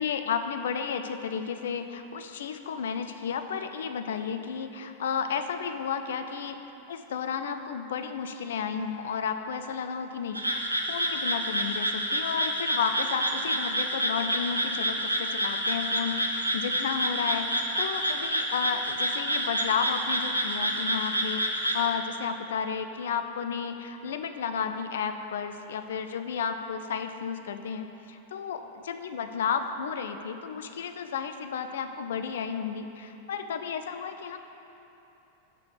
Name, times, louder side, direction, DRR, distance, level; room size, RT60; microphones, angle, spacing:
voice 1, 0.0-6.6 6.9-10.6 10.9-17.5 17.8-34.4, left 7 dB, 60° left, 8 dB, 0.4 m, -32 dB
sound 1, 10.3-21.9, right 1 dB, 85° right, 0.6 m, -29 dB
6.8 x 4.9 x 6.6 m, 2.9 s
figure-of-eight pair, 90°, 0 cm